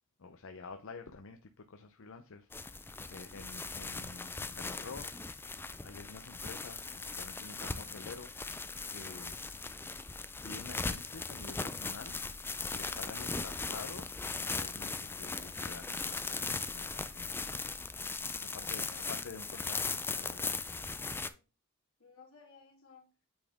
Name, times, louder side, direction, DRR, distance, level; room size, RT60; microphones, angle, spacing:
voice 1, 0.2-5.1 5.8-8.6 8.9-9.4 10.4-12.4 12.7-17.5 18.5-20.6, left 4 dB, 65° left, 0.6 m, -49 dB
sound 1, 2.5-21.3, left 4 dB, 10° left, 0.4 m, -39 dB
voice 2, 3.1-3.5 18.5-19.1 21.1-21.4 22.0-23.1, left 4 dB, 85° left, 2.7 m, -59 dB
8.6 x 4.2 x 3.5 m
head